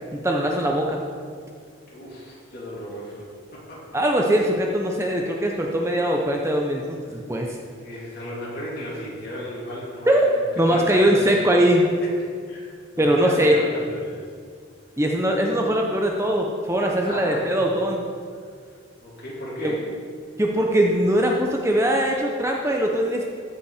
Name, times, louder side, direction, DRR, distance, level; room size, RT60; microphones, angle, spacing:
voice 1, 0.1-1.0 3.9-7.6 10.1-10.3 10.6-11.8 13.0-13.6 15.0-18.1 19.6-19.7 20.4-23.2, right 1 dB, 15° right, 0 dB, 0.7 m, -21 dB
voice 2, 1.7-3.8 7.7-10.3 10.6-11.5 12.5-14.3 17.1-17.6 19.0-19.9, equal, 50° left, -5 dB, 3.0 m, -35 dB
14.5 x 5.6 x 5.0 m, 2.1 s
head